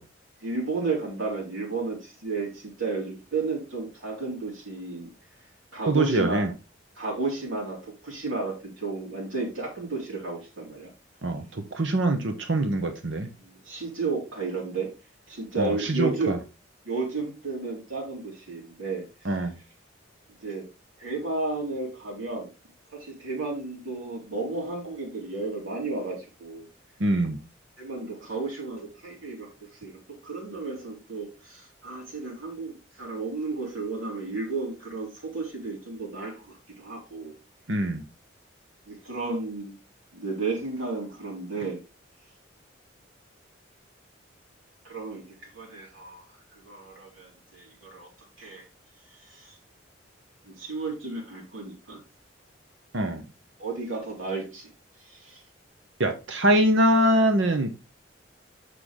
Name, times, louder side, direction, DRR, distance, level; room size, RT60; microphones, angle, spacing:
voice 1, 0.4-5.1 5.7-6.5 7.0-10.9 13.4-14.9 15.3-16.4 16.9-19.4 20.4-20.7 21.0-22.5 22.9-26.7 27.8-37.3 38.9-39.8 40.1-41.8 44.8-46.3 46.5-48.1 48.4-48.7 49.1-49.6 50.4-52.0 53.6-54.7 55.0-55.4, right 3 dB, 85° right, 3.5 m, -33 dB
voice 2, 5.9-6.5 11.2-13.3 15.6-16.4 19.2-19.6 27.0-27.4 37.7-38.0 52.9-53.2 56.0-57.7, right 1 dB, 70° right, 1.0 m, -23 dB
6.7 x 6.5 x 3.7 m
head